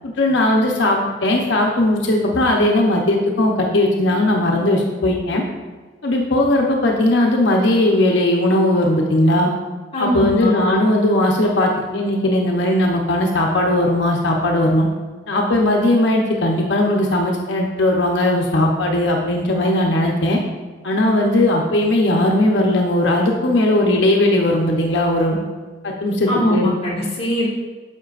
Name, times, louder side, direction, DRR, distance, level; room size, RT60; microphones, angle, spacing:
voice 1, 0.0-5.4 6.0-9.5 10.0-14.9 15.3-20.4 20.8-25.4 25.8-26.7, left 1 dB, 85° left, 0 dB, 0.9 m, -18 dB
voice 2, 9.9-10.6 26.3-27.5, equal, 35° left, -6 dB, 2.4 m, -21 dB
9.9 x 6.7 x 2.5 m, 1.4 s
head